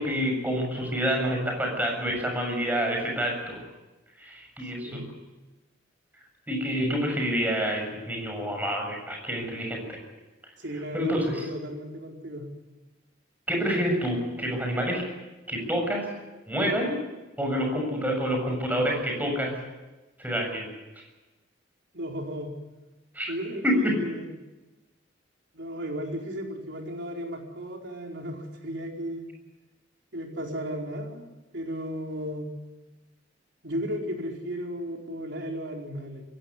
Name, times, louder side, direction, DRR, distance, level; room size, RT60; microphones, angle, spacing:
voice 1, 0.0-3.6 4.2-5.0 6.5-10.0 10.9-11.5 13.5-15.1 15.5-16.1 16.5-17.0 17.4-19.5 20.2-21.0 23.1-23.3 23.6-24.0, equal, 10° right, 1 dB, 7.0 m, -28 dB
voice 2, 10.6-12.5 21.9-22.5 23.3-24.3 25.5-29.3 30.1-31.2 31.5-32.5 33.6-36.2, equal, 65° right, 1 dB, 4.6 m, -34 dB
23.0 x 16.5 x 9.7 m, 1.1 s
head